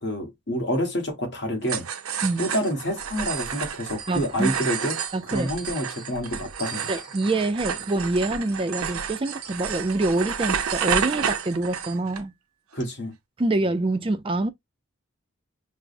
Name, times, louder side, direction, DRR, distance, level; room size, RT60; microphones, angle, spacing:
voice 1, 0.0-1.9 2.4-5.0 5.2-6.9 12.7-13.1, equal, 50° left, 1.2 m, -28 dB
sound 1, 1.6-12.2, right 7 dB, 85° right, 0.6 m, -30 dB
voice 2, 4.1-4.5 5.1-5.5 6.9-12.3 13.4-14.5, right 2 dB, 25° right, 0.4 m, -25 dB
5.8 x 2.0 x 2.5 m
head